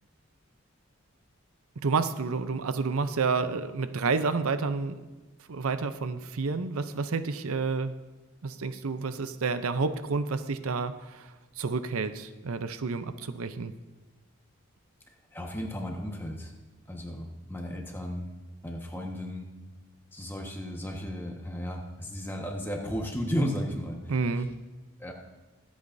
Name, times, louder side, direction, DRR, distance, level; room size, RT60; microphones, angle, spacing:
voice 1, 1.8-5.0 5.5-7.9 8.4-13.7 24.1-24.5, right 4 dB, 90° right, 11 dB, 0.6 m, -30 dB
voice 2, 15.3-16.5 16.9-18.2 18.6-19.5 20.1-24.2 25.0-25.1, equal, 10° left, 1 dB, 1.3 m, -34 dB
23.0 x 8.5 x 2.7 m, 1.2 s
head